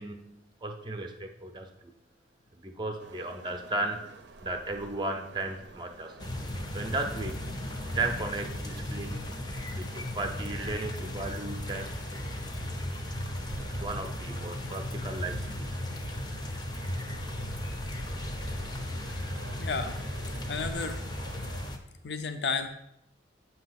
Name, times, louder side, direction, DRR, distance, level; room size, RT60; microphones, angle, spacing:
voice 1, 0.0-1.9 2.5-4.2 4.4-6.1 6.7-7.5 7.9-9.4 9.8-12.0 13.7-15.7, right 2 dB, 25° right, 4 dB, 0.5 m, -35 dB
sound 1, 3.0-21.7, right 3 dB, 75° right, 0.6 m, -50 dB
sound 2, 6.2-21.8, left 1 dB, 25° left, 0.5 m, -36 dB
sound 3, 15.2-20.7, equal, 85° left, 1.0 m, -54 dB
voice 2, 19.6-20.0 20.5-21.0 22.0-22.7, left 4 dB, 65° left, 8 dB, 0.5 m, -32 dB
8.2 x 2.8 x 5.7 m, 0.82 s
head